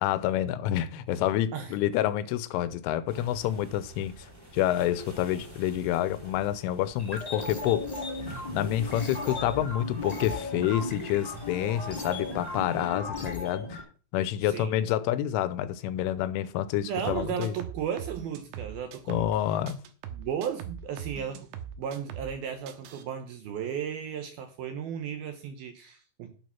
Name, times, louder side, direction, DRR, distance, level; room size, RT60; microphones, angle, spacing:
voice 1, 0.0-4.2 4.5-7.9 8.5-13.8 14.1-17.5 19.1-19.8, left 12 dB, 90° left, 3.2 m, -28 dB
sound 1, 3.1-12.9, right 1 dB, 5° right, 4.2 m, -48 dB
sound 2, 7.0-13.8, left 3 dB, 25° left, 0.8 m, -36 dB
voice 2, 14.4-14.7 16.8-19.3 20.1-21.5 21.8-26.3, right 8 dB, 70° right, 2.4 m, -35 dB
sound 3, 17.0-19.4 19.7-22.4 22.7-23.0, right 8 dB, 85° right, 3.6 m, -41 dB
9.4 x 8.9 x 5.8 m
omnidirectional pair, 5.5 m